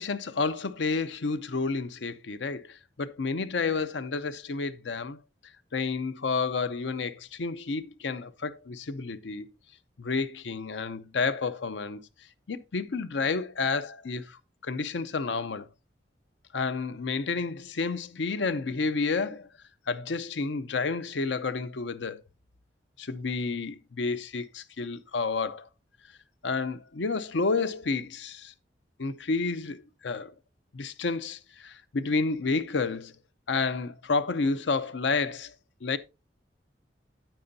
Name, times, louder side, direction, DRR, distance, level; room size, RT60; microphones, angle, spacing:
voice 1, 0.0-5.2 5.7-9.5 10.0-12.0 12.5-15.7 16.5-19.5 19.9-22.2 23.0-25.7 26.4-28.5 29.0-30.3 30.7-33.1 33.5-35.5 35.8-36.0, left 4 dB, 80° left, 0.6 m, -30 dB
9.0 x 8.8 x 2.7 m
head